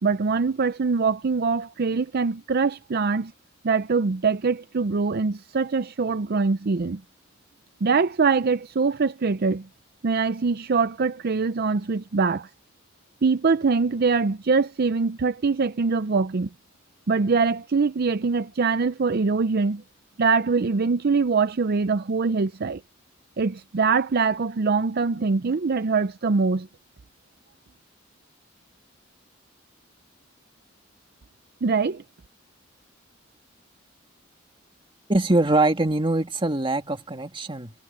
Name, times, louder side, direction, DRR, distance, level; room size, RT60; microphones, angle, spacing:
voice 1, 0.0-3.3 3.6-7.0 7.8-9.7 10.0-12.5 13.2-16.5 17.1-19.8 20.2-22.8 23.4-26.7 31.6-32.0, right 4 dB, 50° right, 0.5 m, -23 dB
voice 2, 35.1-37.7, right 2 dB, 25° right, 2.3 m, -23 dB
head